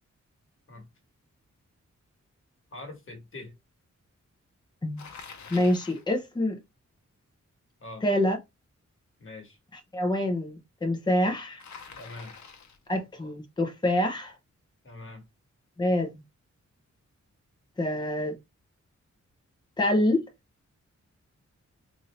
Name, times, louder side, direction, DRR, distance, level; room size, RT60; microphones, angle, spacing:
voice 1, 2.7-3.5 7.8-8.0 9.2-9.6 12.0-12.3 14.8-15.2, left 2 dB, 45° left, 1.4 m, -43 dB
Bicycle, 5.0-6.1 11.6-12.9, left 5 dB, 70° left, 0.8 m, -46 dB
voice 2, 5.5-6.6 8.0-8.4 9.7-11.6 12.9-14.3 15.8-16.2 17.8-18.4 19.8-20.2, left 1 dB, 15° left, 0.7 m, -26 dB
4.2 x 2.6 x 3.2 m
wide cardioid pair, 165°, 29 cm